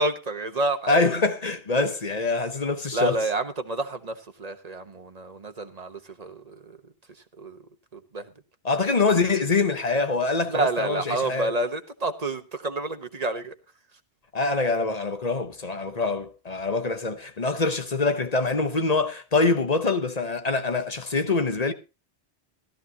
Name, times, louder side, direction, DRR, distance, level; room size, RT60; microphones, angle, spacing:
voice 1, 0.0-1.1 2.9-6.8 7.4-7.6 7.9-8.3 10.5-13.5, right 2 dB, 40° right, 1.3 m, -29 dB
voice 2, 0.9-3.2 8.6-11.5 14.3-21.7, left 3 dB, 40° left, 1.1 m, -24 dB
16.0 x 13.0 x 2.8 m
omnidirectional pair, 1.1 m